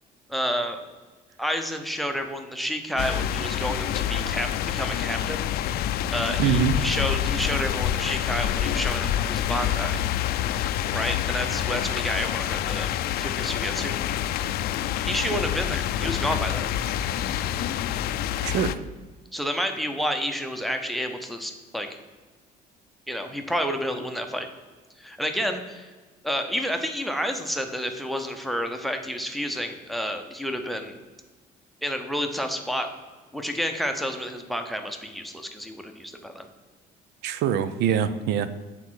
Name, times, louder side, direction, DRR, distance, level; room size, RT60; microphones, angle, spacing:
voice 1, 0.3-0.8 1.4-5.5 6.1-10.0 10.9-12.9 13.2-14.0 15.0-16.7 19.3-22.0 23.1-24.5 25.0-25.9 26.2-31.0 31.8-32.9 33.3-36.5, equal, ahead, 6 dB, 0.7 m, -30 dB
sound 1, 3.0-18.7, left 11 dB, 65° left, 0.4 m, -27 dB
voice 2, 6.4-6.8 18.4-18.8 37.2-38.6, right 8 dB, 85° right, 13 dB, 0.6 m, -24 dB
8.3 x 4.2 x 6.2 m, 1.3 s
cardioid pair, 145°, 17 cm